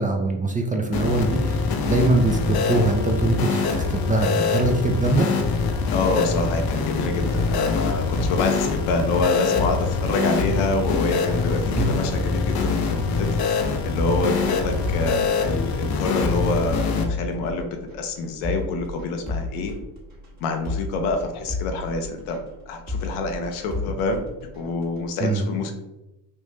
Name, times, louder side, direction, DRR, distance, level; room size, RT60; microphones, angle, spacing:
voice 1, 0.0-5.3 11.7-11.9 25.2-25.4, right 2 dB, 15° right, 2 dB, 0.4 m, -22 dB
sound 1, 0.9-17.0, left 4 dB, 50° left, 0.6 m, -24 dB
voice 2, 5.9-13.3 13.8-19.7 20.4-22.4 22.7-24.2 24.6-25.7, left 3 dB, 80° left, 5 dB, 0.7 m, -26 dB
sound 2, 7.3-25.1, left 3 dB, 35° right, 1.2 m, -33 dB
3.4 x 2.6 x 3.1 m, 0.96 s
supercardioid pair, 75°, 49 cm